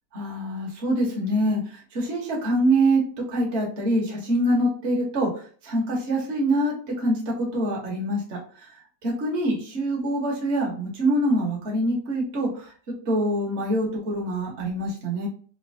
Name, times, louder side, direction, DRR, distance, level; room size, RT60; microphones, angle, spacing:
voice 1, 0.1-8.7 9.0-12.7 13.0-15.3, right 1 dB, 45° right, -3 dB, 1.3 m, -25 dB
4.1 x 2.8 x 2.7 m, 0.42 s
omnidirectional pair, 1.9 m